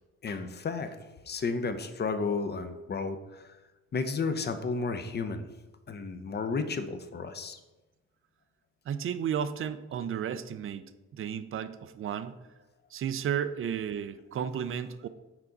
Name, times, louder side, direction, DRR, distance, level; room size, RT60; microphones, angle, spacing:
voice 1, 0.2-1.0 1.3-3.5 3.9-5.5 5.9-7.6, left 4 dB, 35° left, 9 dB, 0.6 m, -32 dB
voice 2, 8.9-12.3 12.9-15.1, right 8 dB, 45° right, 12 dB, 0.5 m, -33 dB
5.9 x 4.5 x 3.9 m, 1.1 s
cardioid pair, 90°, 30 cm